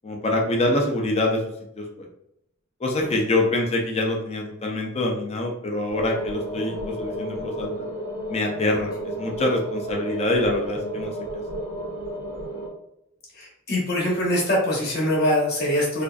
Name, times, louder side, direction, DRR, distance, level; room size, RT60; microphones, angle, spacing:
voice 1, 0.0-1.4 1.8-2.1 2.8-7.9 8.3-8.9 9.2-11.1, left 2 dB, 30° left, 1 dB, 0.4 m, -25 dB
sound 1, 5.9-12.7, right 1 dB, 80° right, 0.7 m, -32 dB
voice 2, 13.3-16.0, left 1 dB, 50° left, -4 dB, 0.9 m, -23 dB
2.5 x 2.3 x 2.2 m, 0.79 s
head